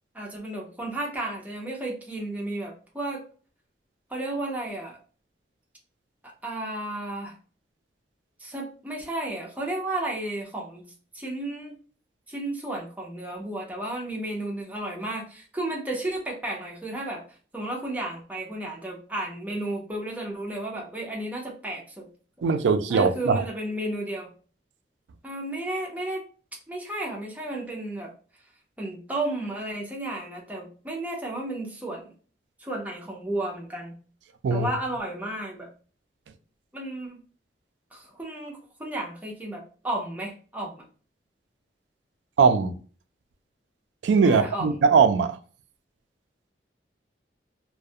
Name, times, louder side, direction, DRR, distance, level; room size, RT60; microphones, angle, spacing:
voice 1, 0.1-3.2 4.1-5.0 6.2-7.3 8.4-10.8 11.1-11.8 12.3-17.2 17.5-22.1 22.9-24.3 25.2-26.2 26.7-28.1 28.8-32.1 32.6-34.0 34.5-35.7 36.7-37.2 37.9-40.8 44.2-44.7, right 1 dB, 10° right, 0.6 m, -33 dB
voice 2, 22.4-23.4 34.4-34.7 42.4-42.8 44.0-45.4, right 5 dB, 85° right, 0.3 m, -20 dB
2.4 x 2.1 x 2.6 m
head